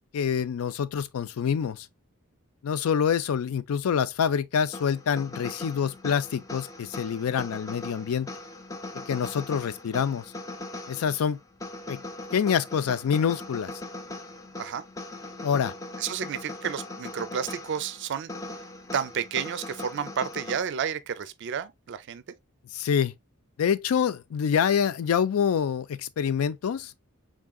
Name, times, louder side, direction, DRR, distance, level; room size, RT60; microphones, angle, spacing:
voice 1, 0.1-1.9 2.6-8.3 9.1-10.2 10.9-11.4 11.9-12.0 12.3-13.7 15.4-15.7 22.7-23.1 23.6-26.9, left 7 dB, 75° left, 0.4 m, -26 dB
sound 1, 4.7-20.6, left 2 dB, 15° left, 0.4 m, -40 dB
voice 2, 16.0-18.3 18.9-22.2, right 7 dB, 55° right, 0.4 m, -31 dB
3.6 x 3.6 x 2.3 m
head